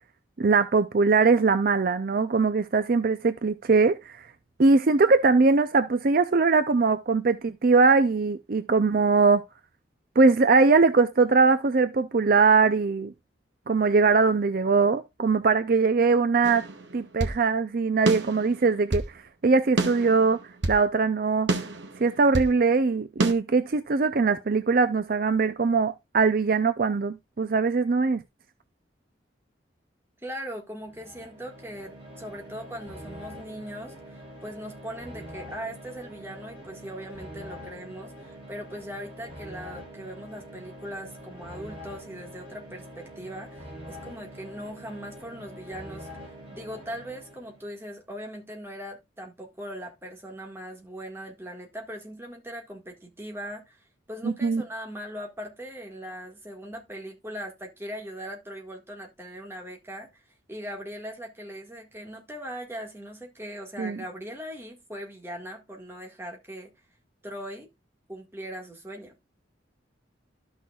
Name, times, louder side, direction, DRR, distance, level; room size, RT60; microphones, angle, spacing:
voice 1, 0.4-4.3 4.6-9.4 10.2-13.1 13.7-16.6 16.9-20.4 20.7-21.5 22.0-28.2 54.2-54.6 63.8-64.0, right 4 dB, 50° right, 0.5 m, -21 dB
sound 1, 16.4-17.4 18.1-19.1 19.8-20.8 21.5-22.6 23.2-23.3, right 2 dB, 75° right, 1.1 m, -28 dB
voice 2, 30.2-60.2 60.5-66.7 67.2-67.7 68.1-69.2, equal, 15° right, 1.7 m, -40 dB
sound 2, 30.8-47.6, equal, 30° right, 4.5 m, -44 dB
13.0 x 6.1 x 2.4 m
head